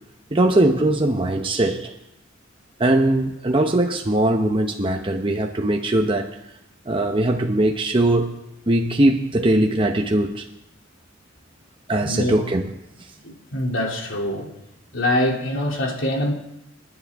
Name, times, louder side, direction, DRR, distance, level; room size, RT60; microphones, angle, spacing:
voice 1, 0.3-1.9 2.8-6.3 6.9-8.3 8.7-10.4 11.9-12.6, right 1 dB, 25° right, 0.9 m, -20 dB
voice 2, 12.0-12.4 13.2-14.5 14.9-16.3, left 1 dB, 80° left, 2.8 m, -24 dB
27.0 x 10.5 x 3.6 m
head